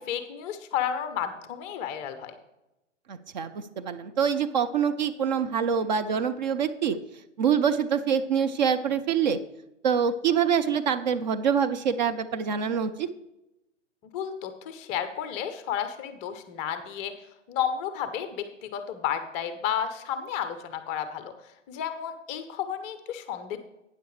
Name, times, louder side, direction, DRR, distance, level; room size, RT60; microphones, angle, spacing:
voice 1, 0.0-2.4 14.1-17.1 17.5-21.3 21.7-23.6, left 9 dB, 20° left, 10 dB, 0.6 m, -32 dB
voice 2, 3.1-7.0 7.4-9.4 9.8-13.1, right 7 dB, 40° right, 10 dB, 0.5 m, -25 dB
12.5 x 9.3 x 3.2 m, 0.93 s
figure-of-eight pair, 125°, 37 cm